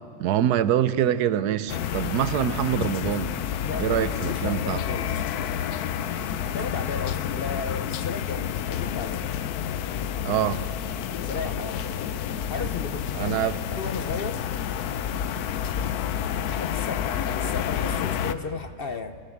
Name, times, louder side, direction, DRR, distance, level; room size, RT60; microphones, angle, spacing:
voice 1, 0.2-3.4 3.8-4.8 10.2-10.6 13.1-13.5, right 10 dB, 85° right, 1.3 m, -25 dB
sound 1, 1.7-18.3, left 9 dB, 80° left, 1.2 m, -29 dB
voice 2, 3.6-5.3 6.4-9.3 11.2-11.8 12.5-13.4 13.7-14.4 16.5-19.2, left 5 dB, 45° left, 0.8 m, -34 dB
28.5 x 16.5 x 7.2 m
omnidirectional pair, 1.6 m